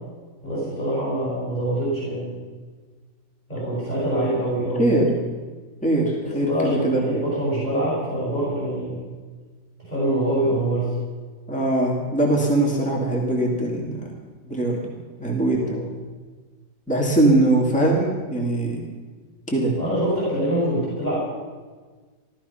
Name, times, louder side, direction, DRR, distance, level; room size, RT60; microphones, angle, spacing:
voice 1, 0.4-2.3 3.5-5.0 6.2-9.0 9.8-11.0 15.5-15.8 19.8-21.2, right 1 dB, 20° left, -7 dB, 6.3 m, -25 dB
voice 2, 4.8-5.1 5.8-7.3 11.5-14.0 14.5-14.9 15.2-15.8 16.9-18.8 19.5-19.7, right 1 dB, 5° left, -2 dB, 2.4 m, -21 dB
16.0 x 13.5 x 5.8 m, 1.4 s
omnidirectional pair, 2.0 m